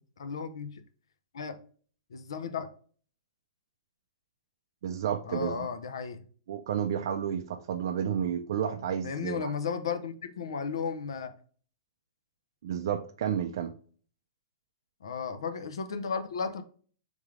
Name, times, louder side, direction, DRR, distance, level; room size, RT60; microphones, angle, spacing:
voice 1, 0.2-0.8 1.3-1.6 2.1-2.7 5.3-6.2 9.0-11.3 15.0-16.6, left 6 dB, 80° left, 0.7 m, -34 dB
voice 2, 4.8-5.7 6.5-9.5 12.6-13.8, right 9 dB, 50° right, 0.4 m, -31 dB
3.5 x 3.2 x 3.6 m
hypercardioid pair, 170°, 3 cm